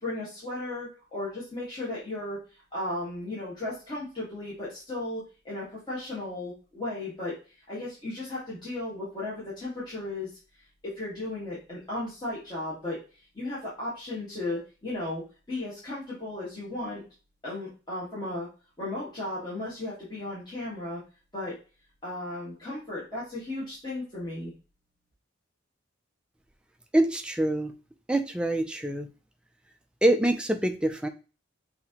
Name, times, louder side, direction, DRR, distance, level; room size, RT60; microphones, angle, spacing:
voice 1, 0.0-7.3 7.7-10.3 10.8-13.0 13.3-15.2 15.5-17.0 17.4-18.5 18.8-21.0 21.3-21.6 22.0-24.5, left 2 dB, 20° left, -9 dB, 1.6 m, -35 dB
voice 2, 26.9-27.7 28.1-29.1 30.0-31.1, right 1 dB, 5° right, 5 dB, 0.4 m, -25 dB
5.9 x 2.8 x 2.9 m, 0.33 s
head